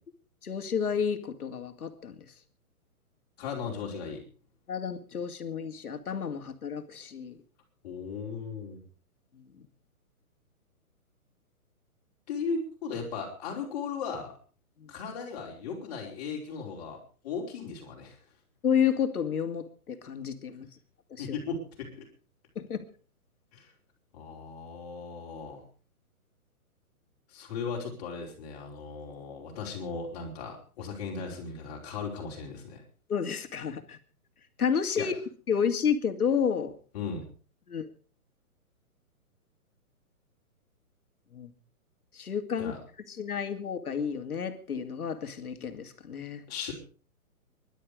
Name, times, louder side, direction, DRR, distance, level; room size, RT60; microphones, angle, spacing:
voice 1, 0.4-2.1 4.7-7.4 14.8-14.9 18.6-20.7 21.1-21.3 22.6-22.8 33.1-34.0 34.6-35.1 35.5-36.7 37.7-37.9 41.3-41.5 42.1-42.7 43.1-46.4, left 7 dB, 80° left, 7 dB, 2.7 m, -30 dB
voice 2, 3.4-4.2 7.8-8.8 12.3-14.3 14.9-17.0 17.2-18.2 21.2-22.0 23.5-23.7 24.1-25.6 27.3-32.8 35.0-35.1 36.9-37.2 42.6-42.8 46.5-46.7, left 5 dB, 25° left, -1 dB, 5.0 m, -37 dB
20.5 x 12.0 x 5.1 m, 0.39 s
hypercardioid pair, 170°, 44 cm